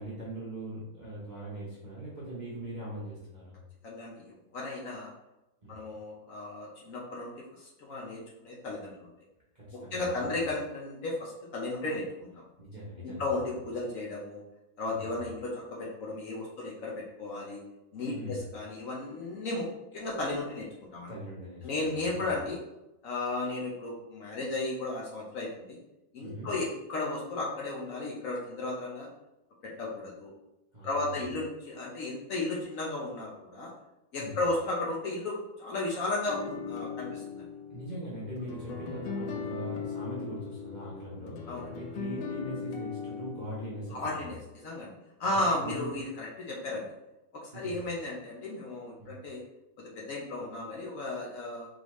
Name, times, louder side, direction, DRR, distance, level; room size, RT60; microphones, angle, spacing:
voice 1, 0.0-3.5 5.6-5.7 9.5-10.3 12.6-13.2 13.5-13.6 14.9-15.2 18.1-18.4 21.1-22.3 26.2-26.5 30.7-31.2 34.2-34.4 37.7-41.4 41.7-44.3 45.3-45.9 47.5-47.8 49.0-49.1, right 1 dB, 35° right, -8 dB, 0.7 m, -41 dB
voice 2, 3.8-5.1 5.7-7.3 7.6-9.1 9.7-12.4 13.0-14.4 14.8-17.6 17.9-19.7 19.9-20.7 20.9-21.1 21.6-22.6 23.0-25.8 26.1-29.1 29.6-30.3 30.8-33.7 34.1-37.5 41.5-41.7 43.9-44.9 45.2-46.9 47.4-49.4 49.8-51.7, left 2 dB, 60° left, -3 dB, 1.0 m, -34 dB
sound 1, 36.3-44.0, left 6 dB, 90° left, 1.2 m, -39 dB
3.9 x 3.4 x 3.1 m, 0.95 s
omnidirectional pair, 1.9 m